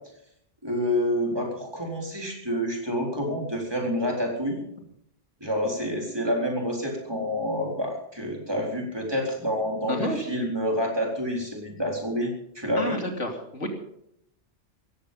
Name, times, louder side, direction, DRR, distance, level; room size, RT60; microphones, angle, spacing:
voice 1, 0.6-4.6 5.4-13.0, equal, 20° right, 0 dB, 4.1 m, -28 dB
voice 2, 9.9-10.2 12.8-13.7, left 1 dB, 90° left, 3 dB, 3.2 m, -30 dB
17.0 x 15.0 x 5.5 m, 0.73 s
omnidirectional pair, 1.2 m